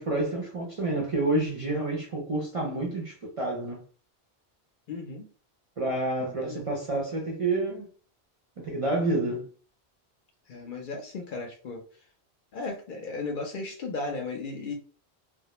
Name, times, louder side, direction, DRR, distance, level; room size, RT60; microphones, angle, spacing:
voice 1, 0.0-3.8 5.8-7.9 8.6-9.5, right 2 dB, 45° right, 0.4 m, -29 dB
voice 2, 4.9-5.3 6.2-6.7 10.5-11.8 12.5-14.7, left 3 dB, 60° left, 0.6 m, -35 dB
2.2 x 2.0 x 2.9 m
omnidirectional pair, 1.1 m